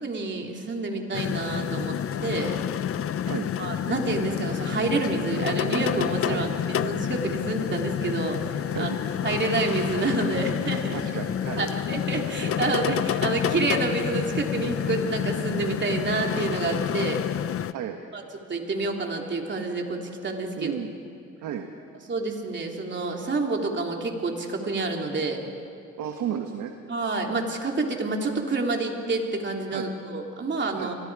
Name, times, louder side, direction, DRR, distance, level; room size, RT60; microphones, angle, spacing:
voice 1, 0.0-2.0 2.2-2.5 3.6-8.9 9.2-11.0 11.6-17.2 18.1-18.2 18.5-20.7 22.1-25.4 26.9-31.0, right 3 dB, 40° right, 1 dB, 3.3 m, -28 dB
sound 1, 1.1-17.7, left 9 dB, 50° left, 0.7 m, -29 dB
voice 2, 10.9-11.7 17.7-18.0 20.6-20.9 21.4-21.7 26.0-26.7 29.7-29.9 30.7-30.9, right 9 dB, 80° right, 4 dB, 1.5 m, -33 dB
30.0 x 24.0 x 4.9 m, 2.5 s
cardioid pair, 90°, 30 cm